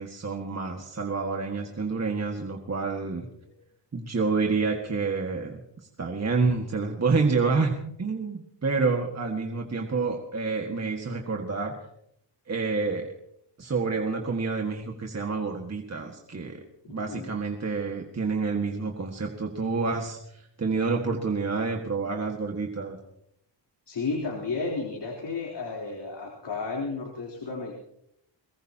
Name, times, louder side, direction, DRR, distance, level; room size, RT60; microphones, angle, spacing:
voice 1, 0.0-3.3 3.9-5.6 6.0-7.7 8.0-11.7 12.5-13.1 13.6-23.0, right 4 dB, 35° right, 1 dB, 1.9 m, -28 dB
voice 2, 23.9-27.7, left 4 dB, 65° left, -2 dB, 3.8 m, -32 dB
22.5 x 20.0 x 2.9 m, 0.74 s
wide cardioid pair, 110°, 44 cm